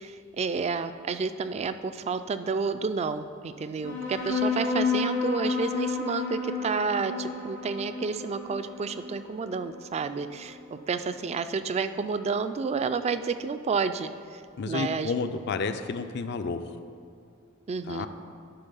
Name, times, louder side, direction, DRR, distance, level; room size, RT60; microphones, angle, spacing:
voice 1, 0.0-15.1 17.7-18.1, right 4 dB, 30° right, 11 dB, 0.3 m, -30 dB
sound 1, 3.8-10.8, left 4 dB, 80° left, 2.3 m, -31 dB
voice 2, 14.6-16.8 17.9-18.1, left 4 dB, 55° left, 9 dB, 0.4 m, -31 dB
11.5 x 4.1 x 5.4 m, 2.5 s
head